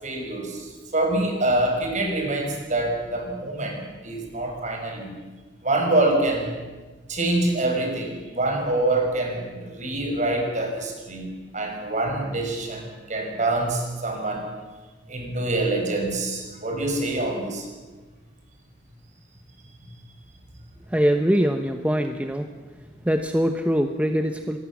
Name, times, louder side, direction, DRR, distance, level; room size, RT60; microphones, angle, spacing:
voice 1, 0.0-5.1 5.6-6.5 7.1-11.3 11.5-14.5 15.1-17.7, right 2 dB, 45° right, 3 dB, 5.9 m, -25 dB
voice 2, 20.9-22.5 23.0-24.6, equal, 10° right, 6 dB, 1.0 m, -23 dB
25.5 x 20.0 x 7.5 m, 1.3 s
head